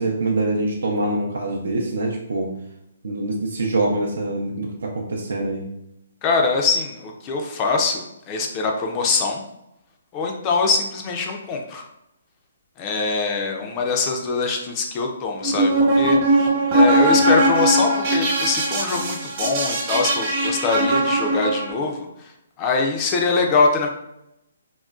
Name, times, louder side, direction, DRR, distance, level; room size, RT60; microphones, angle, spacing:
voice 1, 0.0-2.5 3.0-5.6, right 2 dB, 80° right, 0 dB, 0.5 m, -24 dB
voice 2, 6.2-9.4 10.1-11.8 12.8-22.3 22.6-23.9, left 4 dB, 25° left, 2 dB, 0.4 m, -23 dB
sound 1, 15.4-21.7, right 1 dB, 40° right, 1.0 m, -20 dB
3.7 x 2.1 x 2.3 m, 0.82 s
hypercardioid pair, 150°, 0 cm